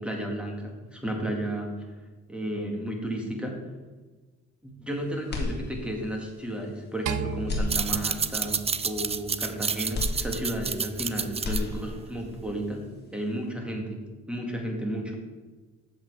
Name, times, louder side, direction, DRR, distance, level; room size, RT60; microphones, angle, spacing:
voice 1, 0.0-1.9 2.3-3.6 4.6-15.2, right 1 dB, 5° right, 1 dB, 2.1 m, -33 dB
sound 1, 5.3-6.2 6.6-6.7 7.4-8.4 9.9-11.0 11.3-12.2, left 2 dB, 35° left, 2.1 m, -32 dB
sound 2, 7.1-9.4, right 7 dB, 80° right, 0.6 m, -36 dB
sound 3, 7.6-12.7, right 6 dB, 20° right, 0.4 m, -30 dB
7.9 x 7.2 x 4.9 m, 1.3 s
cardioid pair, 90°, 30 cm